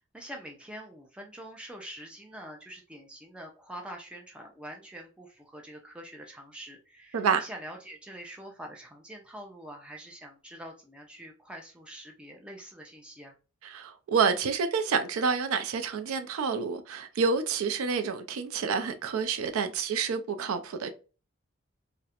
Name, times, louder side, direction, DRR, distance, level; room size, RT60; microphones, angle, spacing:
voice 1, 0.1-13.3, equal, 5° right, 0.4 m, -45 dB
voice 2, 7.1-7.5 13.6-20.9, right 5 dB, 80° right, 0.4 m, -28 dB
2.4 x 2.1 x 2.7 m
head